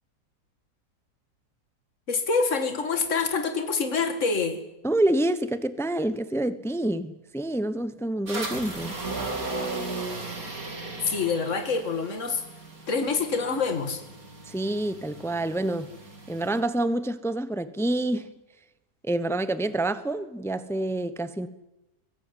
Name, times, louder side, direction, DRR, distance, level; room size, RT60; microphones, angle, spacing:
voice 1, 2.1-4.6 11.1-12.4 12.9-14.0, left 4 dB, 50° left, 2.5 m, -26 dB
voice 2, 4.8-9.0 14.5-15.9 16.3-18.3 19.0-21.5, right 1 dB, ahead, 0.8 m, -27 dB
sound 1, 8.3-16.6, right 2 dB, 65° right, 4.0 m, -36 dB
23.0 x 18.5 x 9.4 m
omnidirectional pair, 1.6 m